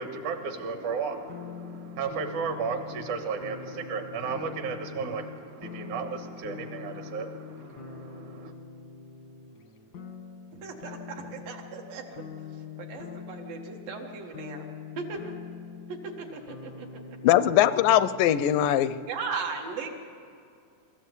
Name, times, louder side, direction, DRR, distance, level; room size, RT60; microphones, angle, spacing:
voice 1, 0.0-8.5, right 5 dB, 70° right, 6 dB, 2.6 m, -34 dB
sound 1, 1.3-19.1, left 6 dB, 65° left, 1.0 m, -44 dB
voice 2, 10.5-12.0 12.8-14.7 15.0-15.3 16.0-16.9 19.1-19.9, right 5 dB, 85° right, 1 dB, 3.6 m, -37 dB
voice 3, 17.2-19.0, left 12 dB, 85° left, 15 dB, 2.2 m, -21 dB
24.0 x 14.0 x 8.2 m, 2.4 s
omnidirectional pair, 3.9 m